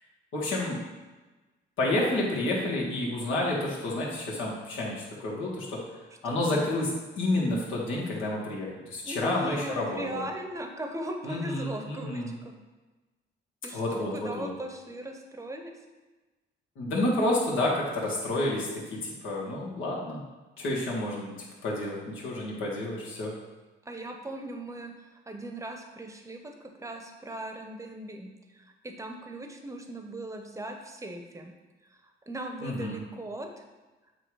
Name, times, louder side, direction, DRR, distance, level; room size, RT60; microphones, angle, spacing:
voice 1, 0.3-0.8 1.8-5.8 6.2-6.9 7.2-10.2 11.2-12.4 13.7-14.5 16.8-20.2 20.6-21.3 21.6-23.3 32.6-33.0, left 1 dB, 85° left, -4 dB, 1.7 m, -29 dB
voice 2, 6.2-6.6 9.1-12.5 13.6-15.7 23.8-24.9 25.3-31.5 32.3-33.5, right 1 dB, 15° right, 4 dB, 0.8 m, -39 dB
7.9 x 2.7 x 4.8 m, 1.2 s
cardioid pair, 90°, 20 cm